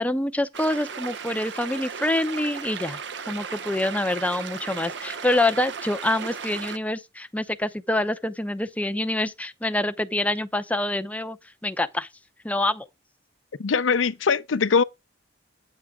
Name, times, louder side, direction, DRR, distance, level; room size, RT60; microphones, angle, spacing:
voice 1, 0.0-3.0 3.3-11.4 11.6-12.1 12.4-12.9, left 1 dB, 10° left, 0.6 m, -26 dB
sound 1, 0.5-6.8, right 6 dB, 65° right, 0.7 m, -36 dB
voice 2, 13.6-14.8, left 5 dB, 85° left, 0.6 m, -21 dB
8.6 x 8.3 x 3.6 m
head